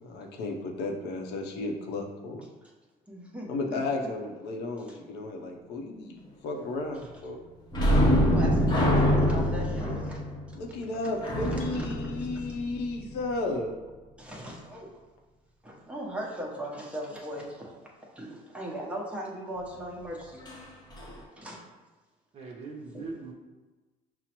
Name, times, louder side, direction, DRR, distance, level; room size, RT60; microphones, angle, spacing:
voice 1, 0.0-2.4 3.5-7.4 10.5-13.7, left 2 dB, 80° left, 1 dB, 0.6 m, -33 dB
voice 2, 3.1-4.1 4.9-5.0 7.9-10.4 11.2-12.4 14.2-14.9 15.6-20.7 21.4-21.6 22.9-23.1, right 1 dB, 5° right, -3 dB, 0.8 m, -39 dB
sound 1, 7.7-13.1 20.4-20.6 21.0-21.1, equal, 25° left, 0.8 m, -25 dB
voice 3, 22.3-23.3, right 3 dB, 40° right, -2 dB, 0.6 m, -40 dB
5.8 x 2.0 x 2.9 m, 1.2 s
cardioid pair, 110°, 17 cm